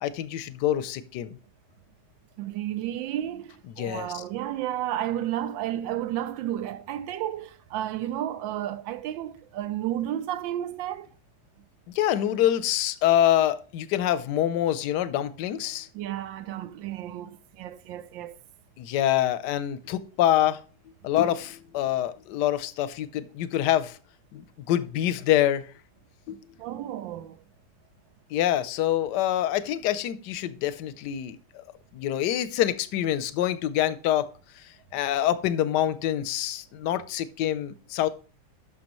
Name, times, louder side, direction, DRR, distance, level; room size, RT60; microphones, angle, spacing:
voice 1, 0.0-1.4 3.8-4.2 11.9-15.9 18.8-20.6 21.0-24.0 24.3-25.7 26.3-26.4 28.3-31.4 31.9-34.3 34.9-38.1, left 12 dB, 70° left, 1.1 m, -25 dB
voice 2, 2.4-11.1 15.9-18.3 26.6-27.4, right 12 dB, 80° right, 1.3 m, -32 dB
11.5 x 6.2 x 3.0 m
omnidirectional pair, 2.1 m